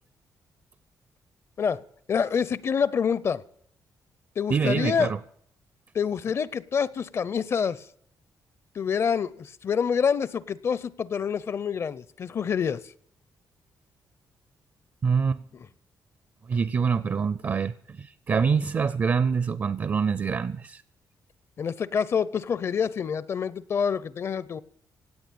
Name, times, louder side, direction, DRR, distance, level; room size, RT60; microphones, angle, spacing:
voice 1, 2.1-3.4 4.4-5.1 5.9-7.9 8.7-12.9 15.5-15.7 21.6-24.6, left 7 dB, 40° left, 0.6 m, -27 dB
voice 2, 4.5-5.2 15.0-15.4 16.5-20.8, right 6 dB, 35° right, 0.5 m, -25 dB
17.0 x 8.8 x 9.0 m
cardioid pair, 150°, 7 cm